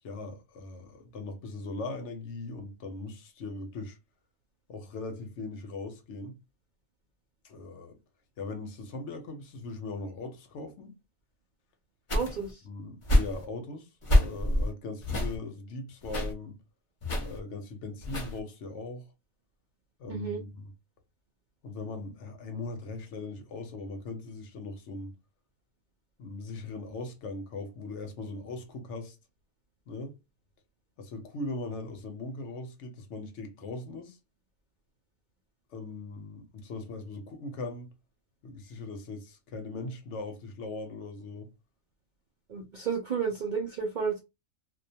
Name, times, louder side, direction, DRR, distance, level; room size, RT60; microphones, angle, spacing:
voice 1, 0.0-4.0 4.7-6.4 7.4-8.0 8.4-10.9 12.6-16.6 17.2-19.1 20.0-20.7 21.6-25.1 26.2-29.2 29.9-30.2 31.0-34.2 35.7-37.9 38.4-41.5, left 3 dB, 70° left, 0.9 m, -39 dB
sound 1, 12.1-12.5 13.0-13.4 14.0-14.7 15.0-15.4 16.0-16.3 17.0-17.4 18.0-18.4, left 1 dB, 30° left, 0.7 m, -26 dB
voice 2, 12.1-12.6 20.1-20.4 42.5-44.2, right 6 dB, 60° right, 0.5 m, -32 dB
2.4 x 2.2 x 2.6 m
omnidirectional pair, 1.3 m